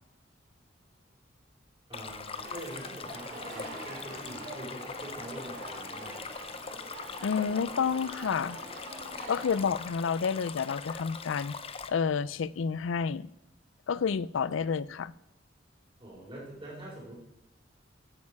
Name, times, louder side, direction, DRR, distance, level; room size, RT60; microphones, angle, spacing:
Stream, 1.9-11.9, left 5 dB, 30° left, 0.7 m, -42 dB
voice 1, 1.9-6.2 14.4-14.9 16.0-17.1, right 1 dB, 30° right, 4.0 m, -44 dB
sound 1, 2.3-9.6, right 2 dB, 50° right, 3.4 m, -44 dB
voice 2, 7.2-8.6 9.3-11.6 11.9-13.3 13.9-15.1, left 6 dB, 85° left, 0.4 m, -29 dB
15.5 x 6.5 x 4.8 m
head